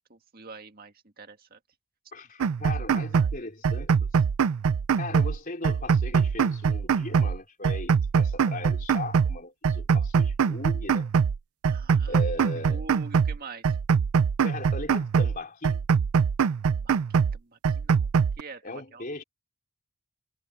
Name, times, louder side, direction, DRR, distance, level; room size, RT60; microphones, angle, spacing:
voice 1, 0.1-1.6 3.1-3.3 11.7-12.2 12.7-13.8 16.8-18.1 18.4-19.0, right 4 dB, 40° right, 2.0 m, -45 dB
voice 2, 2.1-4.2 5.0-11.1 12.1-12.8 14.4-15.8 18.6-19.2, left 2 dB, 40° left, 3.6 m, -38 dB
sound 1, 2.4-3.4 3.6-5.4 5.6-7.4 7.6-9.4 9.6-11.4 11.6-13.4 13.6-15.4 15.6-17.4 17.6-18.4, right 6 dB, 75° right, 0.4 m, -23 dB
head